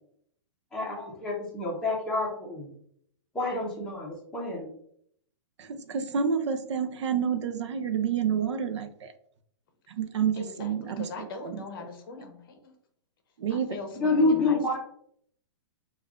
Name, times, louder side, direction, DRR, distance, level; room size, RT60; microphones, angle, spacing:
voice 1, 0.7-2.7 3.3-4.7 14.0-14.8, left 2 dB, 5° left, -5 dB, 0.8 m, -28 dB
voice 2, 5.6-9.1 9.9-11.6 13.4-13.8, right 7 dB, 70° right, 8 dB, 0.5 m, -29 dB
voice 3, 10.3-12.7 13.5-14.8, left 4 dB, 45° left, 5 dB, 0.7 m, -41 dB
5.3 x 2.4 x 2.4 m, 0.66 s
hypercardioid pair, 165°, 15 cm